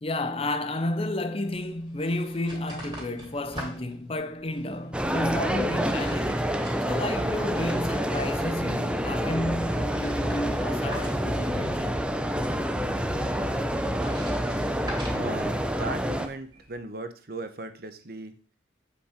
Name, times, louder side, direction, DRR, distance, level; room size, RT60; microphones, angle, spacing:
voice 1, 0.0-12.0, left 1 dB, 30° left, 0.7 m, -32 dB
sound 1, 1.5-16.8, right 1 dB, 20° right, 2.9 m, -46 dB
sound 2, 4.9-16.3, equal, 5° right, 0.5 m, -28 dB
sound 3, 8.8-15.4, left 1 dB, 55° left, 1.2 m, -41 dB
voice 2, 15.1-18.3, right 2 dB, 55° right, 0.9 m, -37 dB
8.5 x 5.3 x 5.1 m
head